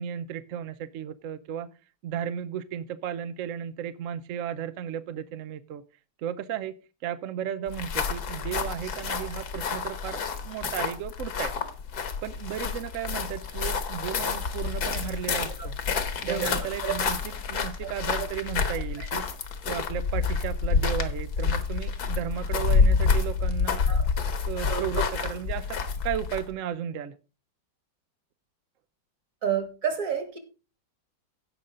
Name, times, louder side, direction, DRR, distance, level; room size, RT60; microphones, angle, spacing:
voice 1, 0.0-1.7 2.0-5.8 6.2-6.8 7.0-11.5 12.2-15.8 16.3-17.2 17.5-19.2 19.7-23.8 24.5-27.1, right 9 dB, 70° right, 0.7 m, -34 dB
sound 1, 7.7-26.5, left 5 dB, 60° left, 1.6 m, -28 dB
voice 2, 15.3-16.0 16.2-16.6 16.8-16.9 17.8-17.9 18.2-18.3 19.0-19.1 23.9-24.1 24.7-24.8 29.4-30.4, right 7 dB, 50° right, 2.2 m, -31 dB
16.0 x 5.5 x 3.7 m
omnidirectional pair, 1.9 m